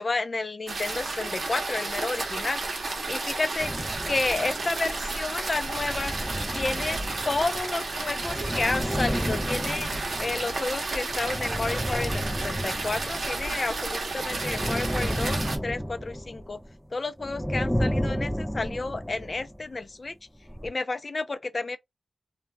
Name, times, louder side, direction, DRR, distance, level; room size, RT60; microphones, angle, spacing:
voice 1, 0.0-2.6 3.1-3.7 4.1-6.1 6.5-7.0 7.3-9.9 10.2-16.6 16.9-20.2 20.6-21.8, left 3 dB, 50° left, 0.4 m, -31 dB
sound 1, 0.7-15.6, right 3 dB, 70° right, 0.8 m, -32 dB
sound 2, 3.6-4.9 5.4-13.8 14.1-16.9 17.2-19.6 20.4-20.7, equal, 5° left, 0.7 m, -32 dB
2.2 x 2.1 x 3.2 m
cardioid pair, 55°, 0 cm